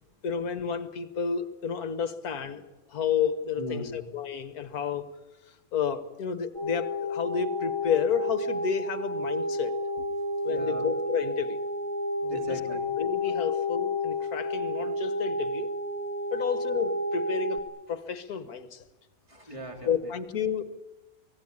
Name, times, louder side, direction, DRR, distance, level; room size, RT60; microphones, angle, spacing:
voice 1, 0.2-2.6 2.9-5.1 5.7-9.7 10.0-10.1 10.4-11.6 12.2-12.4 13.0-15.7 16.3-17.6 17.9-18.8 19.9-20.6, left 7 dB, 55° left, 11 dB, 1.7 m, -31 dB
voice 2, 3.6-4.0 10.5-10.9 12.3-12.9 13.2-13.4 19.3-20.1, equal, 15° right, 2 dB, 3.9 m, -39 dB
sound 1, 6.5-17.6, left 1 dB, 20° left, 3.9 m, -31 dB
24.5 x 17.5 x 9.7 m, 1.1 s
omnidirectional pair, 2.0 m